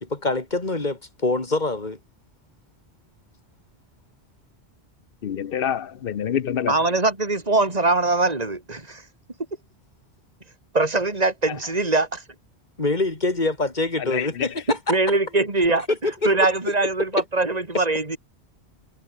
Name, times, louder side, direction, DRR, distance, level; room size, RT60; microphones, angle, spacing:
voice 1, 0.0-2.0 12.8-15.0 15.9-16.3 17.1-17.2, left 2 dB, 45° left, 3.0 m, -25 dB
voice 2, 5.2-6.8 14.1-14.5, left 8 dB, 60° left, 1.0 m, -26 dB
voice 3, 6.7-9.0 10.7-12.2 14.9-15.9 16.2-18.2, right 2 dB, 35° right, 3.2 m, -22 dB
omnidirectional pair, 1.1 m